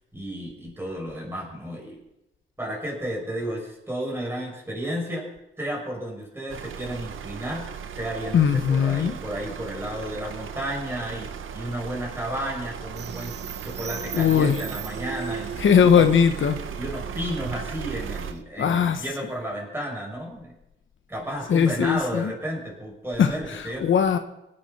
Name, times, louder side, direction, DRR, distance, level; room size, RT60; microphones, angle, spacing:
voice 1, 0.1-2.0 2.6-5.3 5.6-7.7 7.9-13.3 13.6-16.0 16.8-20.5 21.1-23.8, right 1 dB, 10° right, -2 dB, 6.7 m, -32 dB
sound 1, 6.5-18.3, right 7 dB, 90° right, 1.1 m, -37 dB
voice 2, 8.3-9.1 14.1-14.6 15.6-16.6 18.6-19.0 21.5-22.3 23.2-24.2, left 7 dB, 75° left, 8 dB, 1.2 m, -20 dB
sound 2, 13.0-18.4, right 6 dB, 60° right, 0.8 m, -37 dB
26.0 x 10.0 x 4.4 m, 0.89 s
wide cardioid pair, 135°, 20 cm